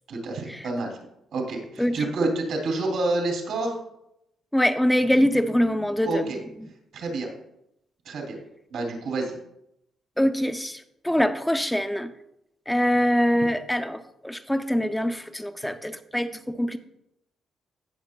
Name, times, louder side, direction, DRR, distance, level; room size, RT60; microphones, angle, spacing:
voice 1, 0.1-1.0 1.3-3.8 6.0-6.4 6.9-7.3 8.0-8.4 8.7-9.4, right 2 dB, 65° right, 1 dB, 2.6 m, -28 dB
voice 2, 4.5-6.3 10.2-12.1 12.7-16.8, equal, 5° left, 9 dB, 0.4 m, -24 dB
17.0 x 6.8 x 2.2 m, 0.82 s
cardioid pair, 165°, 0 cm